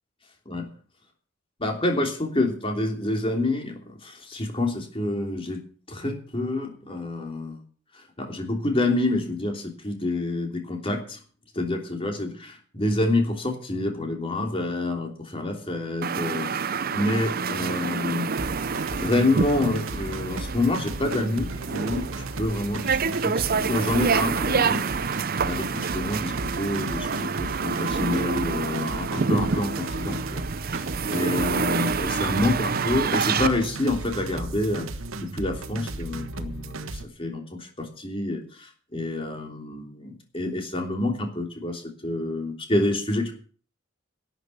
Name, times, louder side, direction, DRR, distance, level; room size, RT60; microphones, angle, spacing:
voice 1, 1.6-5.6 5.9-7.6 7.9-11.2 11.5-18.3 18.9-30.4 31.1-34.9 35.2-36.9 37.2-43.3, left 2 dB, 25° left, 3 dB, 3.1 m, -28 dB
sound 1, 16.0-33.5, right 5 dB, 45° right, 0.6 m, -28 dB
sound 2, 18.4-37.1, right 2 dB, 85° right, 1.2 m, -35 dB
12.0 x 8.0 x 8.6 m, 0.43 s
head